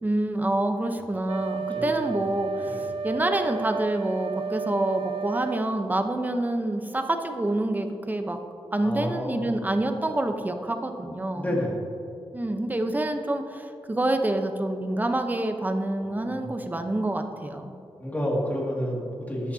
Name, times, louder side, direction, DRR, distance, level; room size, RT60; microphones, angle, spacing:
voice 1, 0.0-8.4 8.7-11.6 12.3-17.7, right 1 dB, 15° right, 6 dB, 0.7 m, -27 dB
Wind instrument woodwind instrument, 1.3-5.7, right 6 dB, 65° right, 0.4 m, -32 dB
voice 2, 1.7-2.2 2.7-2.8 8.8-9.7 11.3-11.9 16.0-16.8 18.0-19.5, equal, 15° left, -3 dB, 2.0 m, -31 dB
14.0 x 8.7 x 2.7 m, 2.7 s
wide cardioid pair, 130°, 10 cm